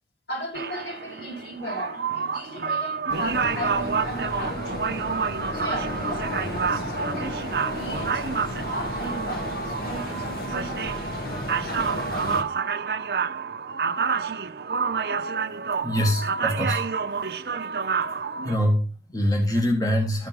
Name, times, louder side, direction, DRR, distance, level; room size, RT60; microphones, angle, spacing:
voice 1, 0.3-4.8 5.5-6.3 6.7-7.4 7.6-8.2 8.7-11.1, equal, 75° left, 6.2 m, -36 dB
sound 1, 0.5-18.6, right 5 dB, 60° right, 0.6 m, -29 dB
sound 2, 3.1-12.4, left 1 dB, 55° left, 1.9 m, -33 dB
voice 2, 15.8-16.8 18.4-20.3, equal, 20° left, 1.6 m, -24 dB
13.0 x 5.1 x 5.9 m
head